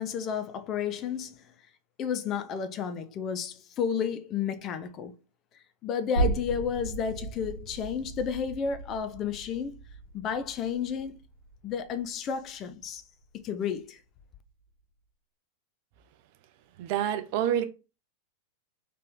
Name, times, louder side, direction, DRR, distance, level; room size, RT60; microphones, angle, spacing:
voice 1, 0.0-1.3 2.0-5.2 5.8-9.8 10.1-11.2 11.6-13.0 13.4-14.0, left 7 dB, 35° left, 0.6 m, -32 dB
sound 1, 6.2-13.4 13.8-13.9, right 3 dB, 85° left, 1.7 m, -36 dB
voice 2, 16.8-17.6, right 10 dB, 45° right, 0.6 m, -27 dB
3.8 x 3.2 x 3.6 m
figure-of-eight pair, 90°, 0 cm